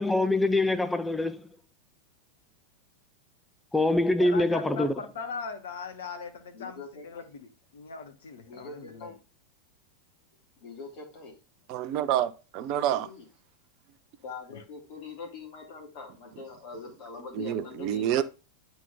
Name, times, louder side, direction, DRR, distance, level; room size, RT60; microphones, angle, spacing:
voice 1, 0.0-1.5 3.7-4.9, left 2 dB, 5° left, 0.5 m, -24 dB
voice 2, 4.2-9.1 14.5-14.6, left 4 dB, 60° left, 1.0 m, -39 dB
voice 3, 6.5-7.3 8.5-9.1 10.6-11.4 12.7-13.2 14.2-18.2, left 4 dB, 45° left, 3.1 m, -43 dB
voice 4, 11.7-13.1 17.4-18.2, right 11 dB, 40° right, 0.6 m, -28 dB
9.1 x 4.1 x 3.9 m
figure-of-eight pair, 90°, 0 cm